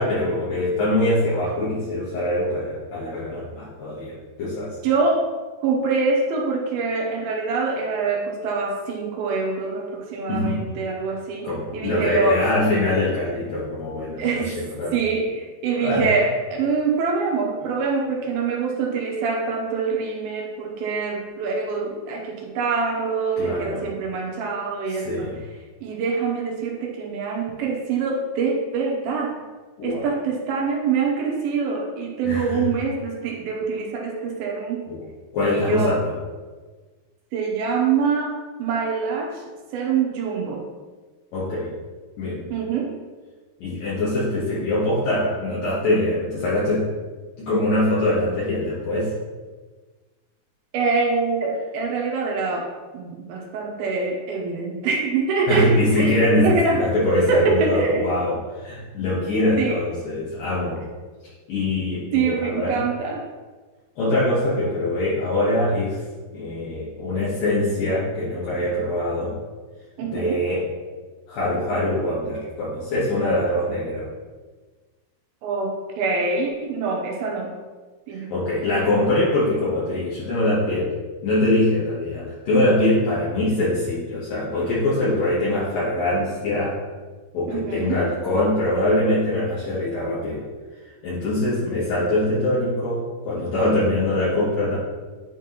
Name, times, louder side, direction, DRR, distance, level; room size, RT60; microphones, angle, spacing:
voice 1, 0.0-4.7 10.3-10.6 11.4-15.0 15.8-16.1 23.4-23.8 24.9-25.4 29.8-30.1 32.2-32.6 34.9-35.0 35.3-36.1 41.3-41.7 42.2-42.5 43.6-46.9 47.4-49.1 55.5-60.8 61.5-62.8 64.0-66.0 66.3-69.4 70.0-70.6 71.3-74.1 78.3-80.9 81.2-86.8 87.3-90.4 91.0-93.0 93.2-94.8, left 1 dB, 65° left, -9 dB, 2.8 m, -23 dB
voice 2, 4.8-5.3 5.6-12.4 14.2-14.6 14.9-25.3 25.8-29.4 29.8-34.9 35.4-36.0 37.3-39.4 39.7-40.6 42.5-43.0 50.7-58.0 59.6-59.8 62.1-63.2 70.0-70.4 75.4-77.5 78.1-78.3 87.5-88.0, right 4 dB, 75° right, 0 dB, 2.6 m, -25 dB
9.5 x 4.6 x 3.0 m, 1.4 s
omnidirectional pair, 4.6 m